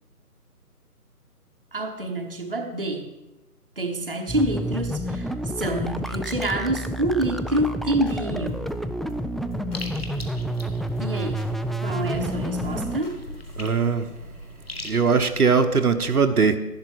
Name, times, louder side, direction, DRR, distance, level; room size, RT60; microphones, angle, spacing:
voice 1, 1.7-3.1 3.8-5.3 5.6-8.8 11.0-11.5 11.8-13.2, right 1 dB, 35° right, 0.9 m, -27 dB
sound 1, 4.3-13.0, right 1 dB, ahead, 0.3 m, -29 dB
sound 2, 7.2-7.4 7.6-8.2 8.5-8.7 9.1-9.3 9.5-10.6 11.0-11.5 11.8-13.8, left 2 dB, 70° left, 4.2 m, -45 dB
sound 3, 9.7-15.6, left 2 dB, 40° left, 1.3 m, -41 dB
voice 2, 13.6-14.1 14.8-16.6, right 5 dB, 70° right, 1.0 m, -20 dB
11.5 x 11.0 x 4.6 m
figure-of-eight pair, 180°, 47 cm